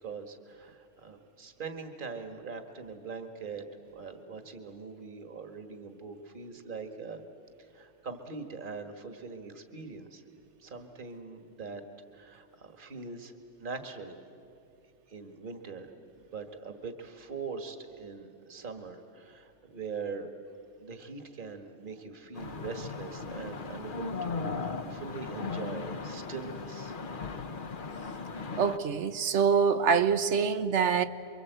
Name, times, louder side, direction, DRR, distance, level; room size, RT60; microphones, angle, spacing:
voice 1, 0.0-3.6 3.9-7.2 7.6-10.2 10.6-11.8 12.1-13.3 13.6-14.1 15.1-15.9 16.3-20.3 20.8-26.9, right 5 dB, 45° right, 1.8 m, -42 dB
sound 1, 22.3-28.8, left 4 dB, 45° left, 1.1 m, -37 dB
voice 2, 28.6-31.1, right 6 dB, 70° right, 1.2 m, -25 dB
28.0 x 23.5 x 8.1 m
omnidirectional pair, 1.3 m